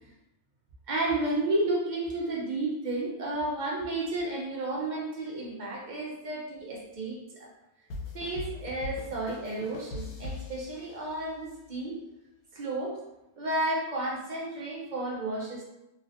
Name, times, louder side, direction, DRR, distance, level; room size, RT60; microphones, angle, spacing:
voice 1, 0.9-7.5 8.1-12.0 12.5-13.0 13.4-15.6, right 2 dB, 50° right, -4 dB, 0.5 m, -32 dB
sound 1, 7.9-11.5, left 3 dB, 75° left, 1.1 m, -40 dB
3.1 x 2.9 x 2.5 m, 0.90 s
omnidirectional pair, 1.6 m